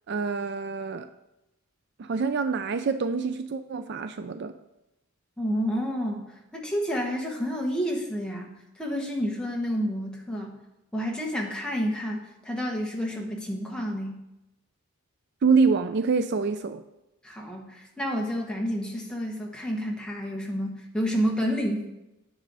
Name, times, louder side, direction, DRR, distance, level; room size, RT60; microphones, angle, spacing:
voice 1, 0.1-1.1 2.0-4.5 15.4-16.8, right 4 dB, 50° right, 11 dB, 0.4 m, -26 dB
voice 2, 5.4-6.2 6.5-8.5 8.8-10.6 10.9-14.1 17.2-21.9, equal, 5° left, -1 dB, 1.2 m, -29 dB
9.9 x 6.3 x 4.1 m, 0.93 s
head